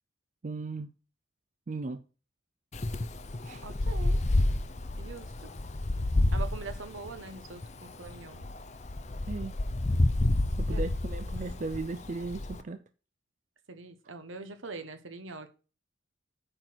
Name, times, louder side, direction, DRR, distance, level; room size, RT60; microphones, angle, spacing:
voice 1, 0.4-0.9 1.7-2.0 3.4-3.7 9.3-9.6 10.6-12.8, right 3 dB, 35° right, 0.4 m, -36 dB
Wind, 2.7-12.6, left 1 dB, 35° left, 0.6 m, -30 dB
voice 2, 3.6-4.2 5.0-5.3 6.3-8.5 10.7-10.9 13.7-15.5, right 4 dB, 70° right, 1.1 m, -43 dB
9.0 x 4.5 x 6.1 m
head